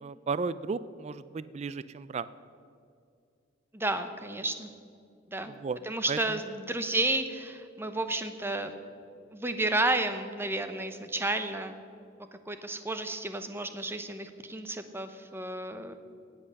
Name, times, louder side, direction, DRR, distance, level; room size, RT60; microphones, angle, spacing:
voice 1, 0.0-2.3 5.5-5.8 6.1-6.4, right 4 dB, 35° right, 16 dB, 0.3 m, -34 dB
voice 2, 3.7-4.7 5.3-5.5 5.8-8.7 9.3-11.8 12.5-16.0, right 2 dB, 10° right, 9 dB, 0.8 m, -32 dB
18.0 x 7.8 x 6.5 m, 2.3 s
head